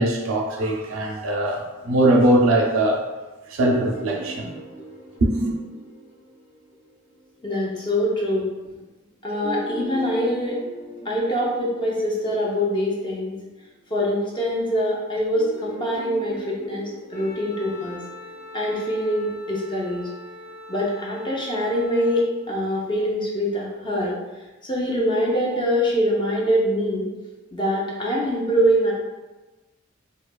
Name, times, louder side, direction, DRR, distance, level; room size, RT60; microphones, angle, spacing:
voice 1, 0.0-3.0 3.5-4.5 5.2-5.5, right 1 dB, 85° right, 0 dB, 0.5 m, -21 dB
sound 1, 3.9-7.7 9.3-13.8 15.2-20.4, left 1 dB, 85° left, 1.3 m, -40 dB
voice 2, 7.4-8.5 9.2-10.6 11.0-13.3 13.9-18.0 18.5-20.1 20.7-24.2 24.6-27.1 27.5-28.9, equal, 25° left, -3 dB, 0.5 m, -24 dB
Wind instrument woodwind instrument, 17.1-22.3, left 3 dB, ahead, 0.8 m, -42 dB
2.7 x 2.3 x 2.2 m, 1.2 s
head